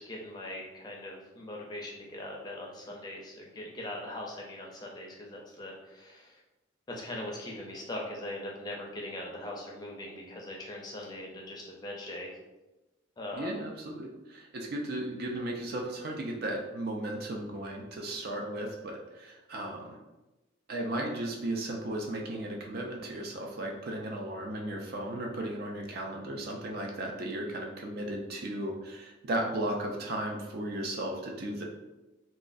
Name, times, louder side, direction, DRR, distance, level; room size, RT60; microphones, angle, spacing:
voice 1, 0.0-6.4 6.9-12.3 13.2-13.6, left 1 dB, 20° left, -1 dB, 0.4 m, -41 dB
voice 2, 13.3-20.0 20.7-31.6, right 1 dB, 50° right, 1 dB, 0.4 m, -35 dB
3.0 x 2.3 x 2.5 m, 1.1 s
head